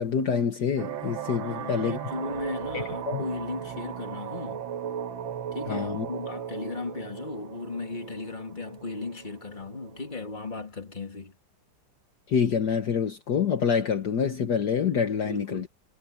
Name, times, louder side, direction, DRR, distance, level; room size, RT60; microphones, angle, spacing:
voice 1, 0.0-2.0 2.7-3.2 5.7-6.1 12.3-15.7, left 7 dB, 60° left, 1.8 m, -26 dB
sound 1, 0.8-10.3, right 8 dB, 90° right, 2.1 m, -37 dB
voice 2, 1.4-4.7 5.5-11.3 15.2-15.7, left 3 dB, 25° left, 2.6 m, -36 dB
omnidirectional pair, 2.1 m